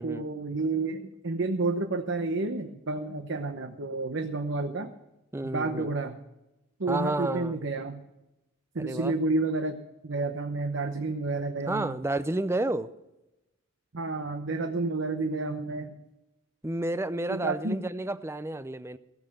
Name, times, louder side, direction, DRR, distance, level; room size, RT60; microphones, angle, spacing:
voice 1, 0.0-4.9 5.5-6.2 6.8-8.1 8.7-12.0 13.9-16.0 17.3-17.8, right 3 dB, 60° right, 6 dB, 0.9 m, -30 dB
voice 2, 5.3-5.9 6.9-7.6 8.8-9.1 11.7-12.9 16.6-19.0, right 2 dB, 10° right, 14 dB, 0.5 m, -31 dB
17.5 x 7.9 x 6.6 m, 0.94 s
head